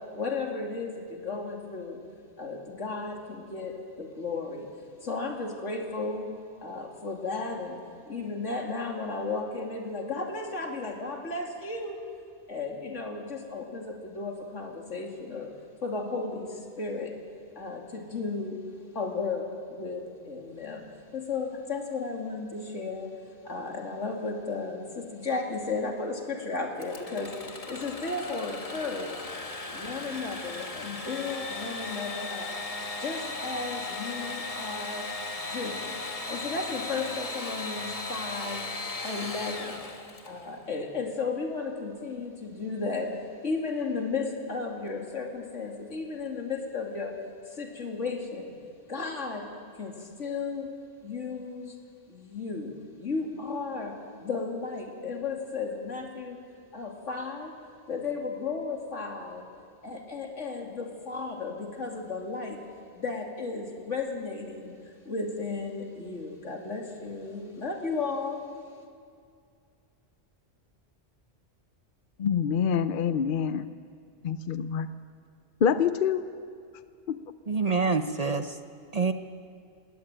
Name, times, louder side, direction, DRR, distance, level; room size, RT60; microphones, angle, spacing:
voice 1, 0.1-2.0 2.4-4.7 5.0-6.3 6.6-7.8 8.1-12.0 12.5-15.5 15.8-17.1 17.6-18.6 18.9-20.9 21.1-23.1 23.4-29.1 29.7-32.5 33.0-35.1 35.4-36.0 36.3-38.6 39.0-39.9 40.2-43.2 43.4-47.1 47.5-48.5 48.9-49.5 49.8-50.7 51.0-51.7 52.1-54.0 54.2-56.4 56.7-57.5 57.9-59.4 59.8-62.6 62.9-68.4, left 4 dB, 85° left, 1 dB, 2.9 m, -34 dB
Engine / Sawing, 26.8-40.5, left 2 dB, 30° left, 1.3 m, -37 dB
voice 2, 72.2-73.7 74.2-74.9 75.6-76.2 77.1-77.2, left 7 dB, 55° left, 12 dB, 0.8 m, -26 dB
voice 3, 77.5-78.6 78.9-79.1, right 4 dB, 40° right, 8 dB, 0.8 m, -26 dB
20.0 x 18.0 x 8.9 m, 2.3 s
omnidirectional pair, 1.2 m